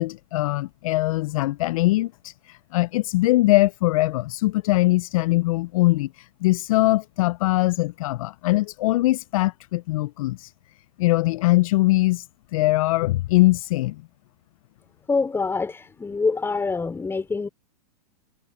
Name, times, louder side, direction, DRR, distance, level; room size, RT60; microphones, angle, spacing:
voice 1, 0.0-6.1 6.4-10.5 11.0-12.2 12.5-14.0, left 19 dB, 55° left, 0.6 m, -21 dB
voice 2, 15.1-17.5, left 4 dB, 10° left, 4.2 m, -25 dB
hypercardioid pair, 120°, 21 cm